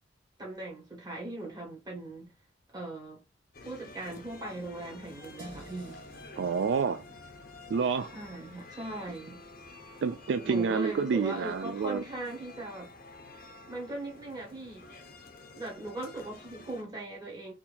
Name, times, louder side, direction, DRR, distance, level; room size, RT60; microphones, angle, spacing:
voice 1, 0.4-2.3 2.7-3.2 3.6-6.0 8.1-9.4 10.4-12.9 13.7-14.9 15.5-17.5, right 1 dB, 20° right, 1.7 m, -39 dB
sound 1, 3.5-16.8, left 3 dB, 50° left, 0.8 m, -50 dB
sound 2, 5.4-11.3, right 1 dB, 85° right, 1.9 m, -54 dB
voice 2, 6.3-7.0 7.7-8.1 10.0-12.0, right 5 dB, 70° right, 0.3 m, -28 dB
4.4 x 2.8 x 2.6 m
head